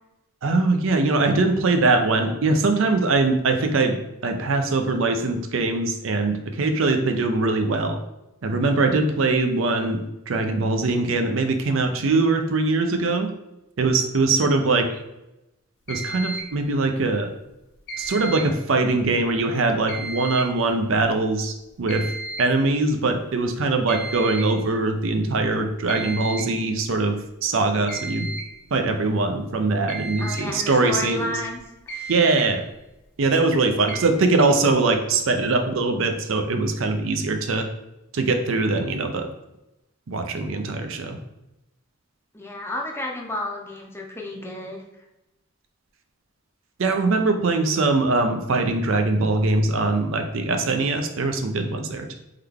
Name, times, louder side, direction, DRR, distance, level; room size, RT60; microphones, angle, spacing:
voice 1, 0.4-4.0 4.2-8.0 8.4-13.3 13.8-14.9 15.9-17.3 18.0-22.1 22.4-28.3 28.7-31.4 32.1-32.6 33.2-37.7 38.1-39.3 40.1-41.2 46.8-52.1, right 3 dB, 65° right, 6 dB, 0.5 m, -22 dB
sound 1, 15.9-16.6 17.9-18.6 19.9-20.6 21.9-22.6 23.9-24.6 25.9-26.6 27.9-28.6 29.9-30.5 31.5-31.6 31.9-32.5 33.9-34.1, right 3 dB, 55° left, 0.9 m, -34 dB
voice 2, 30.2-31.6 31.9-32.1 42.3-44.8, left 1 dB, 10° left, 0 dB, 0.6 m, -31 dB
3.7 x 3.3 x 3.5 m, 0.92 s
head